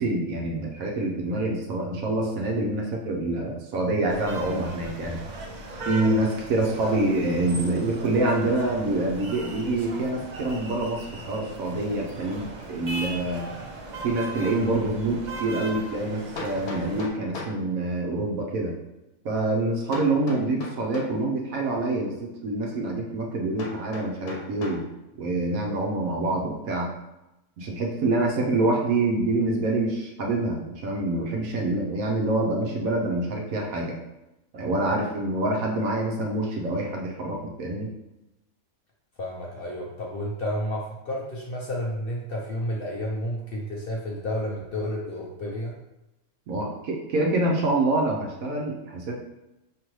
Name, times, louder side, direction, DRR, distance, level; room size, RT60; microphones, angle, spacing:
voice 1, 0.0-5.2 5.8-13.5 14.0-18.7 19.2-24.9 25.2-26.9 27.6-34.0 34.5-37.9 46.5-49.2, right 2 dB, 75° right, -1 dB, 1.1 m, -26 dB
sound 1, 4.1-17.1, right 2 dB, 55° right, 0.5 m, -38 dB
Hammer, 16.4-17.6 19.9-21.2 23.6-24.9, left 3 dB, 80° left, 1.3 m, -37 dB
voice 2, 39.2-45.7, left 1 dB, 55° left, -2 dB, 0.7 m, -31 dB
5.1 x 3.1 x 3.0 m, 0.93 s
omnidirectional pair, 1.5 m